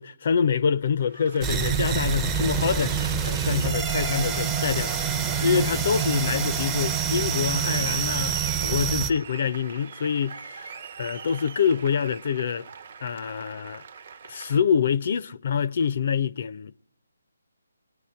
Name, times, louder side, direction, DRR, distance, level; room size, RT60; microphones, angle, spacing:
voice 1, 0.0-5.1 5.4-10.7 11.0-12.7 13.0-13.8 14.3-16.7, left 7 dB, 45° left, 0.4 m, -26 dB
Applause, 1.0-14.6, right 6 dB, 50° right, 1.0 m, -41 dB
sound 1, 1.4-9.1, right 7 dB, 15° right, 0.5 m, -26 dB
25.0 x 9.6 x 4.3 m
hypercardioid pair, 160°, 0 cm